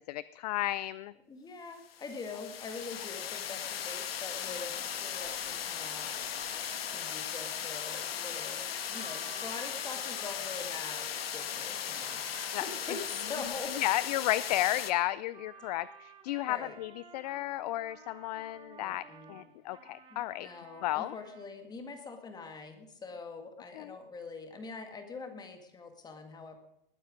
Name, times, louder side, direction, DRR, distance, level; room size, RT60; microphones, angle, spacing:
voice 1, 0.1-1.1 12.5-12.6 13.8-20.5 20.8-21.1 23.7-23.9, left 15 dB, 45° left, 18 dB, 0.4 m, -33 dB
voice 2, 1.3-6.2 6.9-8.6 8.9-12.2 12.5-13.7 16.5-16.8 18.8-19.5 20.1-26.6, left 4 dB, 15° left, 6 dB, 1.8 m, -44 dB
sound 1, 1.8-14.9, left 9 dB, 85° left, 1.4 m, -37 dB
sound 2, 4.3-21.5, right 6 dB, 15° right, 1.9 m, -53 dB
20.0 x 9.0 x 5.1 m, 0.76 s
hypercardioid pair, 140°, 29 cm